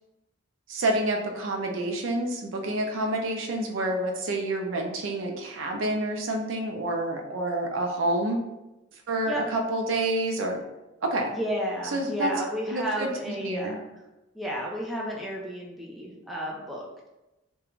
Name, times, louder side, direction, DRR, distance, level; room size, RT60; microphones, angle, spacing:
voice 1, 0.7-8.4 9.1-10.6 11.0-11.3 11.9-12.3 12.7-13.8, right 1 dB, 85° right, 2 dB, 0.5 m, -28 dB
voice 2, 11.3-13.7 14.3-16.9, equal, ahead, -3 dB, 0.4 m, -32 dB
2.4 x 2.2 x 3.0 m, 0.99 s
head